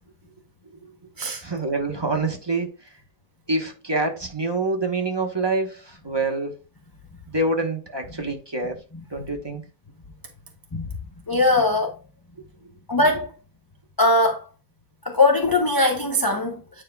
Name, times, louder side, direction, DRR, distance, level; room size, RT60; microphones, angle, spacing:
voice 1, 1.4-2.7 3.5-6.6 7.3-8.8 9.1-9.6, right 2 dB, 20° right, 0.9 m, -26 dB
voice 2, 11.3-12.0 12.9-13.3 14.0-14.5 15.0-16.8, left 2 dB, 25° left, 0.4 m, -20 dB
9.3 x 4.9 x 2.2 m
omnidirectional pair, 1.5 m